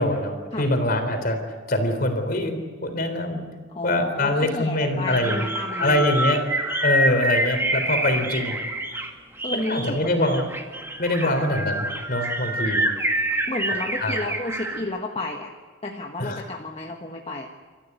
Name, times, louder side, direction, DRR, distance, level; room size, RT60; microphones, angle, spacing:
voice 1, 0.0-1.4 1.7-3.4 3.8-5.4 5.8-6.4 6.8-8.6 9.5-10.4 11.0-12.9 14.0-14.1 16.2-16.4, left 1 dB, 45° left, 6 dB, 3.6 m, -24 dB
voice 2, 3.7-6.3 9.4-10.4 11.2-11.4 13.5-15.5 15.8-17.5, left 2 dB, 30° left, 2 dB, 1.4 m, -32 dB
sound 1, 5.1-9.1 9.4-14.8, right 1 dB, 10° right, 1.8 m, -27 dB
28.0 x 14.5 x 9.5 m, 1.5 s
head